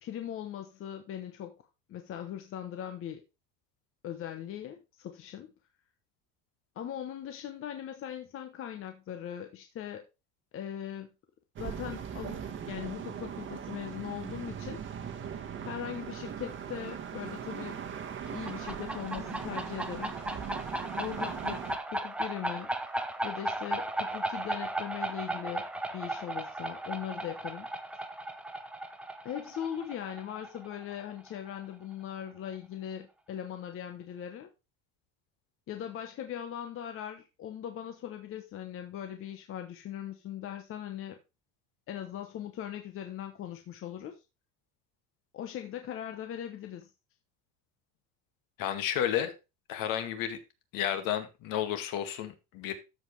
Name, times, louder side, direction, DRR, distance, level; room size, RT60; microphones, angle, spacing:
voice 1, 0.0-1.5 1.9-3.2 4.0-5.5 6.8-10.1 10.5-11.1 11.6-12.4 12.7-14.8 15.6-17.8 18.3-20.1 21.0-22.7 23.2-25.6 25.9-27.7 29.2-34.5 35.7-41.2 41.9-44.2 45.3-46.9, left 10 dB, 35° left, 1.0 m, -40 dB
sound 1, 11.6-21.8, right 8 dB, 30° right, 1.3 m, -40 dB
sound 2, 18.3-31.6, right 1 dB, 5° right, 0.6 m, -36 dB
voice 2, 48.6-49.3 49.7-50.4 50.7-52.7, left 10 dB, 55° left, 2.0 m, -31 dB
13.5 x 5.3 x 3.2 m
cardioid pair, 165°, 39 cm